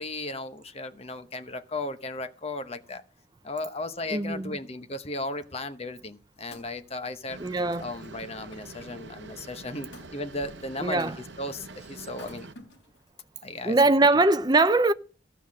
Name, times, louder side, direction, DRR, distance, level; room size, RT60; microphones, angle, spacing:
voice 1, 0.0-3.0 3.4-7.4 7.8-11.1 11.4-12.5 13.4-13.8, left 2 dB, 30° left, 0.9 m, -35 dB
voice 2, 4.1-4.6 7.4-7.9 10.8-11.2 13.6-14.9, right 2 dB, 20° right, 0.5 m, -22 dB
Wood, 6.0-8.9 9.9-10.1 11.0-11.5 12.1-13.1 13.7-13.8, left 2 dB, 75° left, 3.6 m, -51 dB
sound 1, 7.3-12.5, right 3 dB, 65° right, 0.8 m, -45 dB
14.5 x 5.6 x 7.6 m
head